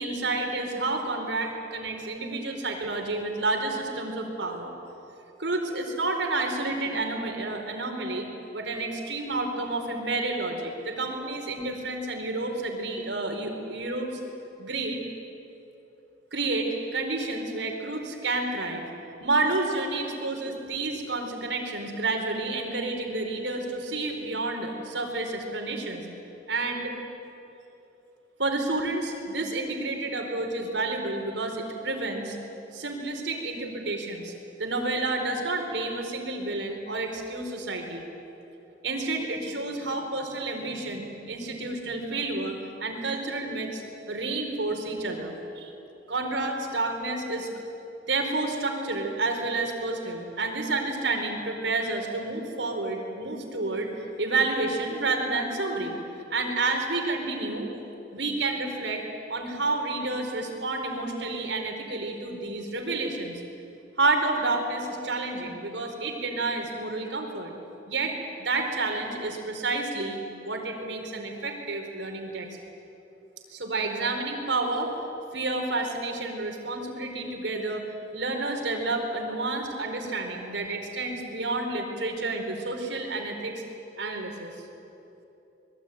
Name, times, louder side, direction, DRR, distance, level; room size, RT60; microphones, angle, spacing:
voice 1, 0.0-4.8 5.4-14.2 14.6-15.0 16.3-18.8 19.2-26.1 26.5-26.9 28.4-32.4 32.7-34.3 34.6-38.0 38.8-45.7 46.1-47.5 48.1-53.9 54.2-56.0 56.3-57.7 58.1-59.0 59.3-63.4 64.0-67.5 67.9-70.2 70.4-72.5 73.5-74.9 75.3-77.9 78.1-83.6 84.0-84.5, right 2 dB, 80° right, 3 dB, 4.3 m, -30 dB
25.5 x 22.0 x 9.5 m, 2.9 s
head